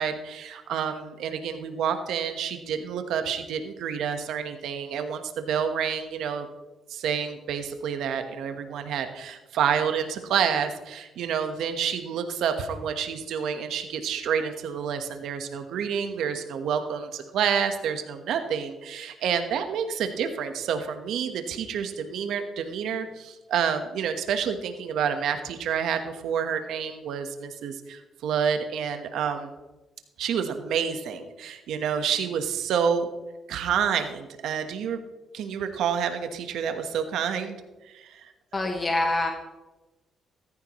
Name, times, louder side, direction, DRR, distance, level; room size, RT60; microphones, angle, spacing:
voice 1, 0.0-6.5 6.9-29.5 30.2-33.1 33.5-35.0 35.3-37.6 37.8-38.7, right 7 dB, 80° right, 7 dB, 1.3 m, -28 dB
voice 2, 38.5-39.3, left 2 dB, 30° left, 3 dB, 1.4 m, -25 dB
15.0 x 14.0 x 3.1 m, 1.1 s
cardioid pair, 90°, 0 cm